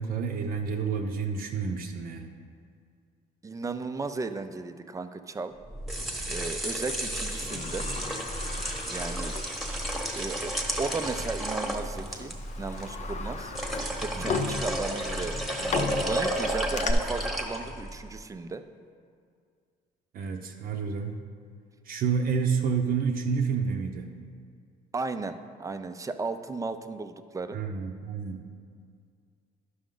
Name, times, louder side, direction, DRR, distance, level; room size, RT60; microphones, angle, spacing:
voice 1, 0.0-2.3 14.1-14.4 20.1-21.1 21.8-24.1 27.5-28.4, right 5 dB, 60° right, 1 dB, 0.7 m, -29 dB
voice 2, 3.4-5.5 6.3-7.9 8.9-9.4 10.1-13.5 14.0-18.6 24.9-27.6, right 3 dB, 20° right, 9 dB, 0.5 m, -35 dB
sound 1, 5.7-18.0, right 1 dB, ahead, 1.1 m, -32 dB
Sliding door, 6.9-10.1 10.5-10.6 11.5-11.7 12.2-16.9, left 5 dB, 45° left, 0.7 m, -36 dB
11.0 x 6.1 x 3.8 m, 2.2 s
cardioid pair, 110°, 17 cm